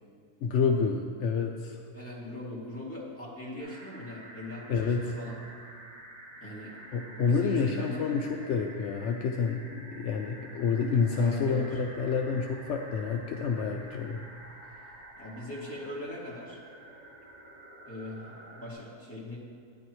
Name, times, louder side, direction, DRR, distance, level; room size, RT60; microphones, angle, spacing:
voice 1, 0.4-1.8 4.7-5.0 6.9-14.2, left 5 dB, 75° left, 3 dB, 0.6 m, -28 dB
voice 2, 1.9-5.4 6.4-6.7 7.1-8.3 11.1-11.8 15.2-16.6 17.9-19.4, left 1 dB, 10° left, -7 dB, 2.3 m, -41 dB
sound 1, 3.6-18.7, right 1 dB, 80° right, 2.6 m, -49 dB
12.0 x 9.9 x 3.1 m, 2.3 s
omnidirectional pair, 1.8 m